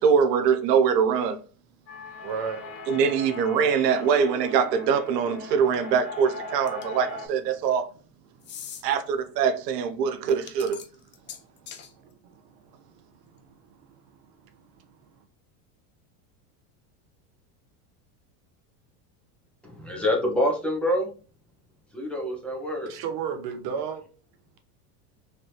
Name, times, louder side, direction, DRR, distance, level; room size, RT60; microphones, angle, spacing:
voice 1, 0.0-1.4 2.9-7.9 8.8-10.8, right 6 dB, 90° right, 0.6 m, -23 dB
sound 1, 1.9-7.3, left 3 dB, 80° left, 1.3 m, -39 dB
voice 2, 2.2-2.7 8.3-8.7 10.2-10.4 11.2-11.5 12.2-14.0 22.9-24.0, right 6 dB, 50° right, 0.9 m, -35 dB
sound 2, 6.7-7.1 8.4-8.8 10.3-11.9, left 8 dB, 25° left, 0.4 m, -41 dB
voice 3, 19.6-21.1 21.9-22.9, left 1 dB, ahead, 1.0 m, -26 dB
3.2 x 3.0 x 2.8 m
supercardioid pair, 105°, 48 cm